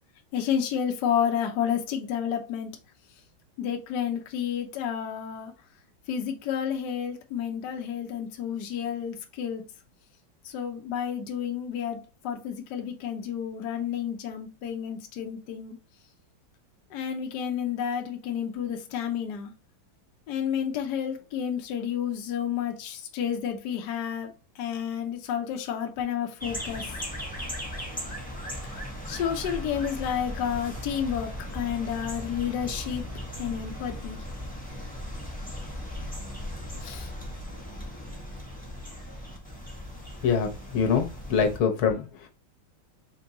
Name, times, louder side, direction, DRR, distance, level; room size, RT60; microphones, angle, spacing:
voice 1, 0.3-2.7 3.6-5.5 6.1-9.6 10.5-15.7 16.9-19.5 20.3-24.3 24.6-26.8 29.1-33.0 33.4-34.2 36.8-37.1, left 8 dB, 65° left, 1.3 m, -30 dB
sound 1, 26.4-41.6, left 1 dB, 5° left, 1.2 m, -37 dB
voice 2, 40.2-42.3, left 6 dB, 85° left, 1.8 m, -25 dB
5.2 x 3.5 x 2.9 m
omnidirectional pair, 2.2 m